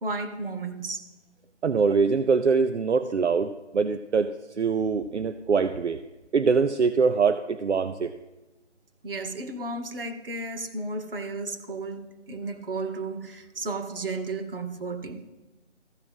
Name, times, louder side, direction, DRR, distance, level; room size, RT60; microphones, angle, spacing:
voice 1, 0.0-1.0 9.0-15.2, right 3 dB, 50° right, 8 dB, 1.2 m, -33 dB
voice 2, 1.6-6.0 6.3-8.1, right 5 dB, 70° right, 10 dB, 0.6 m, -23 dB
14.0 x 4.7 x 5.4 m, 1.1 s
figure-of-eight pair, 155°, 36 cm